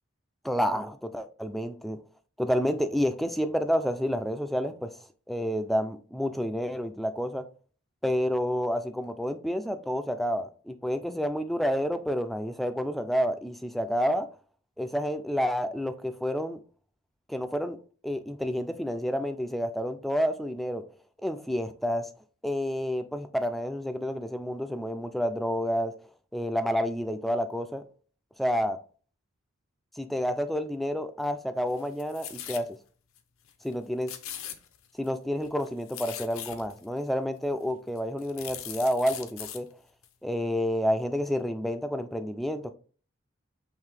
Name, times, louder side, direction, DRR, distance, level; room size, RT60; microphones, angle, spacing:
voice 1, 0.4-2.0 2.4-4.9 5.3-7.4 8.0-14.3 14.8-16.6 17.3-17.8 18.0-20.8 21.2-22.1 22.4-25.9 26.3-27.8 28.4-28.8 30.0-32.7 33.6-34.1 35.0-39.7 40.2-42.7, equal, ahead, 0.3 m, -29 dB
sound 1, 31.7-32.7 33.2-33.3 33.5-33.7 34.0-35.1 35.4-36.8 37.5-37.6 38.0-39.6 40.0-40.1, left 10 dB, 70° left, 0.6 m, -40 dB
5.7 x 2.6 x 3.3 m
head